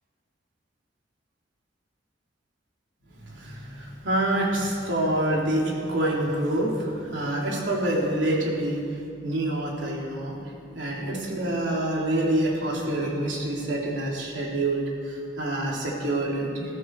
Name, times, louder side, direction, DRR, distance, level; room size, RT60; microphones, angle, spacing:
voice 1, 3.2-10.4 10.7-16.8, right 1 dB, 85° right, -3 dB, 3.6 m, -27 dB
21.0 x 14.0 x 4.9 m, 2.4 s
head